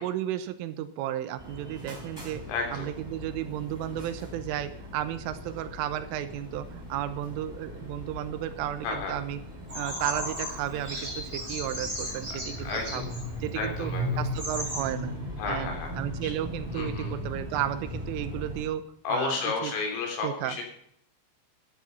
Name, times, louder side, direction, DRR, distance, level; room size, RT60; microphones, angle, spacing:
voice 1, 0.0-2.4 2.7-9.4 9.8-13.1 13.4-15.2 15.5-18.8 19.1-19.7 20.2-20.6, right 12 dB, 85° right, 11 dB, 3.5 m, -33 dB
sound 1, 1.4-18.6, equal, 5° right, 3.4 m, -38 dB
voice 2, 2.5-2.9 8.8-9.2 12.6-13.1 13.6-14.2 15.4-15.9 16.2-16.3 16.7-17.2 19.1-20.6, left 4 dB, 80° left, 2 dB, 6.0 m, -32 dB
Bird vocalization bird call bird song, 9.7-13.3 13.9-14.0 14.3-14.8, equal, 25° right, 7.8 m, -36 dB
13.5 x 10.0 x 5.4 m, 0.69 s
omnidirectional pair, 5.8 m